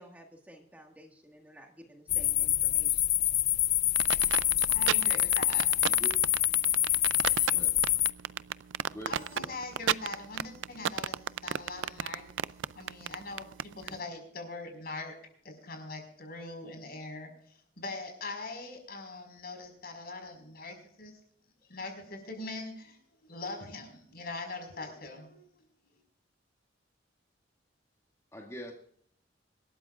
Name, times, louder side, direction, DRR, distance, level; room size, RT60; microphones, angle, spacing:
voice 1, 0.0-3.3, equal, 10° right, 1 dB, 1.7 m, -53 dB
sound 1, 2.1-8.1, left 13 dB, 40° left, 0.4 m, -26 dB
sound 2, 4.0-13.9, right 9 dB, 80° right, 0.4 m, -32 dB
voice 2, 4.7-5.7 9.1-12.3 12.7-15.2 15.4-21.2 21.7-23.0 23.3-26.0, left 3 dB, 55° left, 5 dB, 4.9 m, -42 dB
voice 3, 8.9-9.5 28.3-28.7, equal, 15° left, -1 dB, 2.2 m, -44 dB
26.0 x 13.0 x 2.4 m, 0.63 s
head